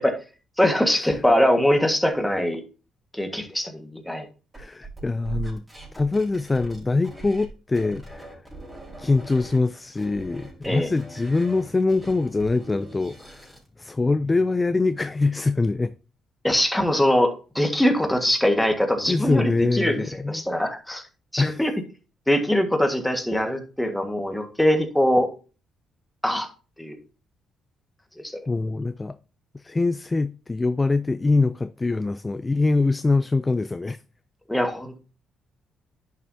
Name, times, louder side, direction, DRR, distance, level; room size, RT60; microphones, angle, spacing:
voice 1, 0.6-2.6 3.1-4.3 10.6-10.9 16.4-21.0 21.3-21.7 22.3-25.3 26.2-26.5 26.8-27.0 28.2-28.4 34.5-35.0, equal, 5° left, 1.6 m, -22 dB
sound 1, 4.5-7.5 7.7-9.6 9.9-13.7, right 3 dB, 10° right, 4.3 m, -41 dB
voice 2, 4.6-5.6 5.9-8.4 9.0-15.9 19.1-20.5 21.4-21.6 28.5-29.2 29.5-34.0, left 3 dB, 20° left, 0.3 m, -24 dB
10.5 x 6.0 x 2.7 m
cardioid pair, 90°, 0 cm